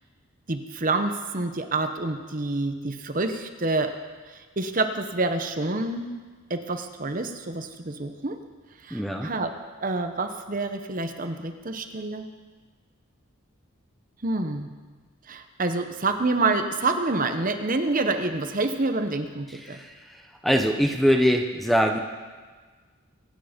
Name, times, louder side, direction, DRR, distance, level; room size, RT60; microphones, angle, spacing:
voice 1, 0.5-3.9 4.6-6.1 6.5-8.4 8.8-9.5 9.8-12.3 14.2-14.7 15.3-19.8, right 3 dB, 40° right, 7 dB, 0.9 m, -27 dB
voice 2, 8.9-9.3 19.6-19.9 20.4-22.0, equal, ahead, 3 dB, 0.8 m, -22 dB
24.0 x 9.6 x 5.2 m, 1.4 s
head